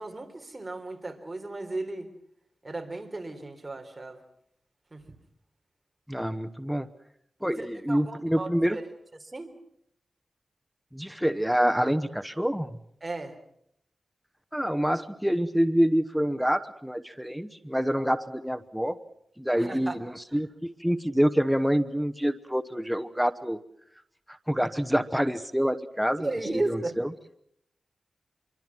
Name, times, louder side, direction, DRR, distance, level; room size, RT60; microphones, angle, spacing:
voice 1, 0.0-2.1 2.6-4.2 4.9-5.0 7.9-8.9 9.2-9.5 13.0-13.3 19.5-20.0 20.3-20.4 26.2-26.9, right 2 dB, 25° right, 5 dB, 3.7 m, -35 dB
voice 2, 6.1-6.9 7.4-8.8 10.9-12.7 14.5-19.0 19.4-23.6 24.3-26.3 26.7-27.1, equal, ahead, 10 dB, 1.0 m, -26 dB
25.5 x 24.0 x 6.0 m, 0.72 s
wide cardioid pair, 95°, 0 cm